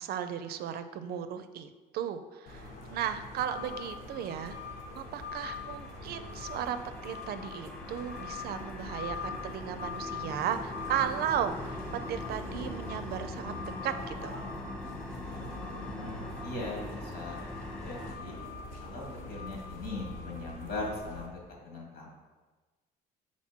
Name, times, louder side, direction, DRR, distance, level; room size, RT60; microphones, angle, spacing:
voice 1, 0.0-4.6 4.9-6.8 7.0-13.5 13.8-14.4, right 9 dB, 65° right, 10 dB, 0.5 m, -35 dB
sound 1, 2.5-21.3, left 3 dB, 60° left, 1.2 m, -42 dB
sound 2, 5.2-18.1, left 1 dB, 5° left, 0.6 m, -43 dB
voice 2, 15.8-17.4 17.8-18.4 18.8-22.1, left 2 dB, 75° left, -2 dB, 2.0 m, -40 dB
5.9 x 4.2 x 4.3 m, 1.3 s
cardioid pair, 110°, 17 cm